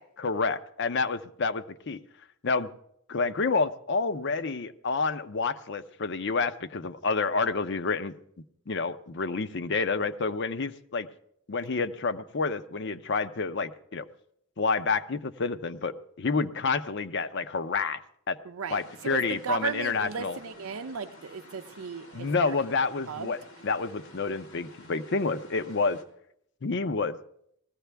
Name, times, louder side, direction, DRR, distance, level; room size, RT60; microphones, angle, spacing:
voice 1, 0.2-2.0 2.4-2.7 3.1-8.2 8.7-11.1 11.5-14.1 14.6-18.0 18.3-18.4 18.7-20.4 22.1-26.0 26.6-27.2, left 4 dB, 55° left, 11 dB, 0.7 m, -29 dB
voice 2, 18.4-22.6 23.1-23.4, right 6 dB, 90° right, 7 dB, 0.5 m, -35 dB
sound 1, 18.7-26.0, left 1 dB, 90° left, 2.2 m, -51 dB
19.5 x 15.5 x 3.4 m, 0.72 s
head